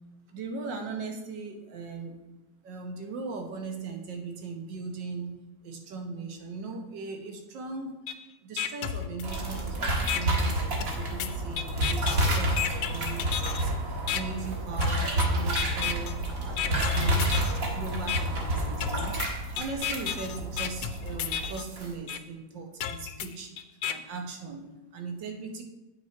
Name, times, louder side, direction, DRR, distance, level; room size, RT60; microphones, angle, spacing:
voice 1, 0.3-2.2 2.6-5.4 5.6-8.0 8.4-16.1 16.4-19.2 19.6-23.5 23.9-25.6, right 4 dB, 85° right, 4 dB, 1.7 m, -38 dB
sound 1, 8.1-8.2 8.6-9.6 10.1-10.2 10.8-13.6 14.1-14.2 14.8-15.3 15.6-16.1 16.6-17.6 18.1-18.2 18.8-21.6 22.1-22.2 22.8-23.9, left 10 dB, 75° left, 1.1 m, -32 dB
sound 2, 9.2-21.9, right 1 dB, 50° right, 1.8 m, -29 dB
8.6 x 6.0 x 4.4 m, 1.0 s
omnidirectional pair, 1.9 m